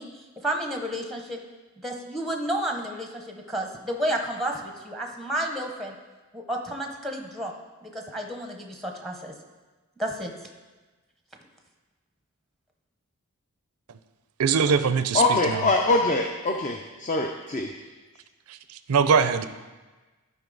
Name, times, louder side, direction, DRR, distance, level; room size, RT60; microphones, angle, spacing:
voice 1, 0.0-1.4 1.8-5.9 6.3-7.5 7.8-9.3 10.0-10.3, right 1 dB, ahead, 2 dB, 0.7 m, -31 dB
voice 2, 14.4-15.7 18.9-19.5, right 6 dB, 85° right, 12 dB, 0.5 m, -22 dB
voice 3, 15.1-17.7, left 2 dB, 35° left, 3 dB, 0.5 m, -23 dB
12.0 x 5.2 x 3.9 m, 1.2 s
head